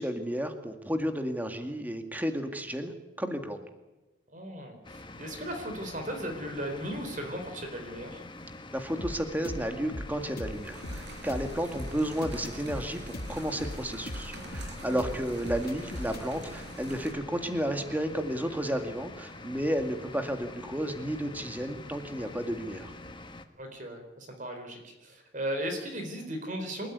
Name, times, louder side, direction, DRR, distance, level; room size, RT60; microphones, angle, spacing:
voice 1, 0.0-3.6 8.7-13.0 13.3-22.9, equal, 10° right, 6 dB, 2.0 m, -32 dB
voice 2, 4.3-8.2 14.9-15.1 22.2-22.3 23.6-26.9, equal, 40° right, 5 dB, 4.0 m, -37 dB
sound 1, 4.8-23.5, left 2 dB, 25° left, 1.5 m, -46 dB
sound 2, 9.0-16.3, left 1 dB, 50° left, 1.4 m, -39 dB
sound 3, 9.9-17.1, right 1 dB, 65° right, 5.2 m, -46 dB
28.0 x 13.5 x 9.7 m, 1.1 s
head